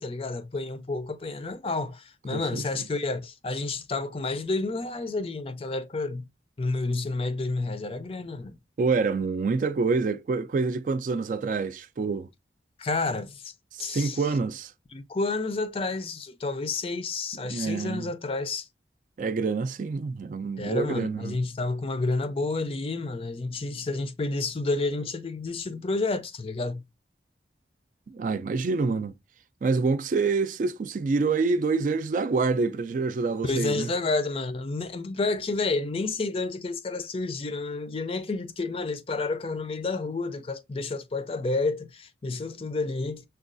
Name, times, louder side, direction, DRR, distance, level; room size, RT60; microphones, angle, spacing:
voice 1, 0.0-6.2 6.6-8.6 12.8-13.5 13.8-14.3 14.9-18.7 20.6-26.8 33.4-43.2, left 3 dB, 30° left, 0.4 m, -30 dB
voice 2, 2.3-2.6 8.8-12.3 13.7-14.7 17.5-18.1 19.2-21.4 28.1-29.1 29.6-33.9, right 4 dB, 45° right, 0.3 m, -27 dB
6.2 x 2.3 x 2.5 m
head